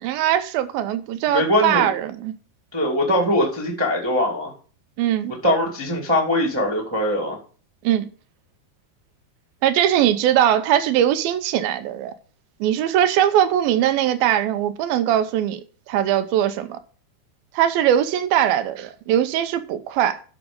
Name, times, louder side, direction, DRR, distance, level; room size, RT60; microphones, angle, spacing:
voice 1, 0.0-2.3 5.0-5.3 7.8-8.1 9.6-12.1 12.6-15.6 15.9-16.8 17.5-20.2, right 11 dB, 80° right, 2.4 m, -20 dB
voice 2, 1.3-1.9 2.7-4.5 5.4-7.4, left 1 dB, 10° right, 1.2 m, -21 dB
11.0 x 6.0 x 5.2 m
omnidirectional pair, 4.6 m